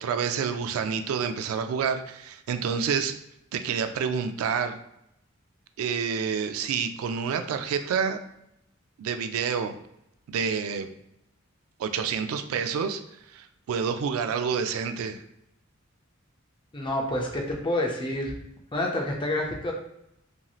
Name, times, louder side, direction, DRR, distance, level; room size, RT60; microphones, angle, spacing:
voice 1, 0.0-3.1 3.5-4.8 5.8-8.2 9.0-9.8 10.3-10.9 11.8-13.0 13.3-15.2, right 6 dB, 80° right, 11 dB, 0.3 m, -28 dB
voice 2, 16.7-18.3 18.7-19.7, left 1 dB, 25° left, 0 dB, 0.5 m, -28 dB
3.0 x 2.6 x 2.3 m, 0.79 s
head